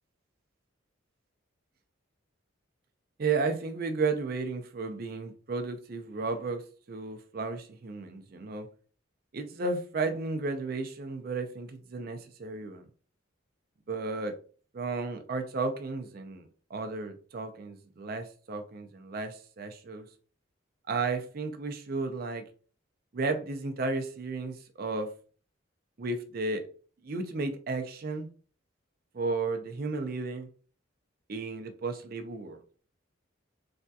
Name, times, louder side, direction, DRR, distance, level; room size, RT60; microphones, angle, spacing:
voice 1, 3.2-8.7 9.3-12.9 13.9-14.4 14.7-20.1 20.9-22.4 23.1-25.1 26.0-26.6 27.0-28.3 29.1-30.5 31.3-32.6, right 3 dB, 45° right, 0.4 m, -33 dB
3.3 x 2.7 x 2.3 m
head